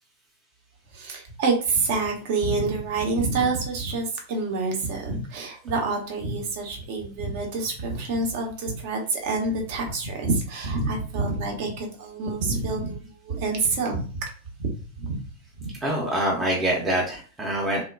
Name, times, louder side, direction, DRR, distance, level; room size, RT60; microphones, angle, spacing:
voice 1, 0.9-14.0 14.6-14.7 15.0-15.2 15.6-15.7, right 3 dB, 50° right, 1 dB, 0.7 m, -27 dB
voice 2, 15.8-17.8, right 1 dB, 15° right, -3 dB, 0.6 m, -25 dB
3.0 x 2.2 x 2.3 m, 0.39 s
figure-of-eight pair, 90°, 0 cm